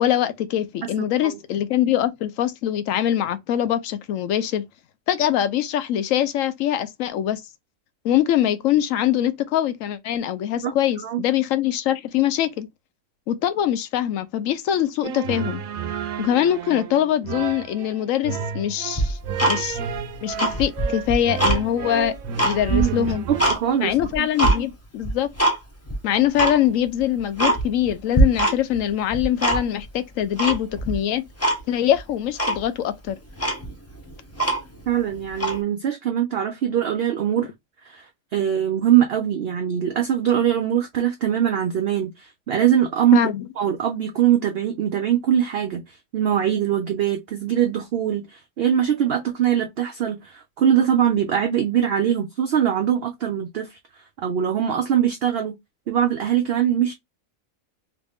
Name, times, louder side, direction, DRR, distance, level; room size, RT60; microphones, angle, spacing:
voice 1, 0.0-4.6 5.1-7.4 8.0-12.7 13.3-15.6 16.2-19.8 20.2-23.3 23.8-25.3 26.0-31.2 31.7-33.2 43.1-43.4, left 11 dB, 75° left, 1.0 m, -23 dB
voice 2, 1.0-1.4 10.6-11.2 22.7-23.9 34.9-37.5 37.8-43.2 43.6-53.8 54.2-55.6 55.9-56.9, right 10 dB, 60° right, 0.7 m, -22 dB
sound 1, 15.0-23.6, right 7 dB, 85° right, 1.0 m, -31 dB
Tick-tock, 19.0-20.0 20.3-21.6 22.0-23.6 24.0-24.6 25.0-25.6 25.9-26.0 26.3-26.6 27.0-27.1 27.4-27.9 28.1-28.8 29.1-29.9 30.4-31.0 31.4-31.6 31.9-32.0 32.4-32.6 33.1-33.2 33.4-34.9 35.3-35.6, right 1 dB, 15° left, 0.6 m, -22 dB
3.1 x 2.5 x 3.4 m
omnidirectional pair, 1.4 m